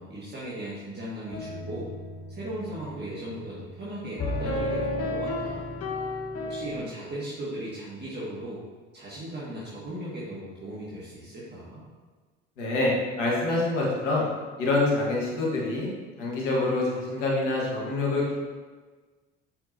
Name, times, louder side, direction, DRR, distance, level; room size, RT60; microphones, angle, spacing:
voice 1, 0.0-1.9 2.3-5.7 6.4-8.6 8.9-11.9, right 1 dB, 30° right, -8 dB, 1.8 m, -37 dB
sound 1, 1.3-6.8, left 2 dB, 40° left, 1.2 m, -33 dB
voice 2, 12.6-12.9 13.2-14.3 14.6-15.9 16.2-18.4, left 2 dB, 80° left, -4 dB, 1.6 m, -26 dB
6.7 x 5.8 x 2.7 m, 1.4 s
hypercardioid pair, 60°, 36 cm